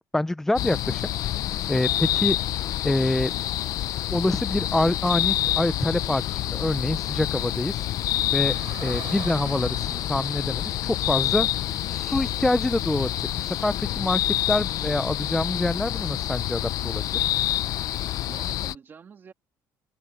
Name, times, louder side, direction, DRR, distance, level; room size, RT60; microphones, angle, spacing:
voice 1, 0.0-1.3 1.7-2.4 2.8-3.3 4.1-7.9 8.3-8.6 8.8-17.3, left 1 dB, 5° left, 0.5 m, -26 dB
sound 1, 0.6-18.8, left 14 dB, 50° left, 0.6 m, -27 dB
Car, 7.9-12.3, right 16 dB, 65° right, 6.1 m, -45 dB
voice 2, 8.6-8.9 18.2-19.3, right 6 dB, 30° right, 2.1 m, -46 dB
cardioid pair, 160°, 8 cm